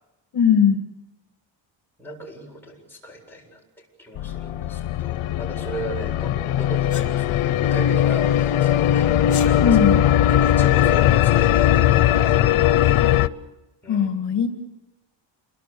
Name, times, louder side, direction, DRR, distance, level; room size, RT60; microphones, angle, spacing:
voice 1, 0.3-0.9 9.6-10.0 13.9-14.5, left 7 dB, 55° left, 6 dB, 2.0 m, -19 dB
voice 2, 2.0-9.1 9.4-9.8 10.2-12.4 13.8-14.1, right 1 dB, 5° left, -2 dB, 7.7 m, -37 dB
sound 1, 4.2-13.3, left 11 dB, 85° left, 0.9 m, -19 dB
Sneeze, 6.9-7.1 9.2-9.5, left 7 dB, 35° left, 3.8 m, -34 dB
28.5 x 23.0 x 7.0 m, 1.1 s
cardioid pair, 150°, 48 cm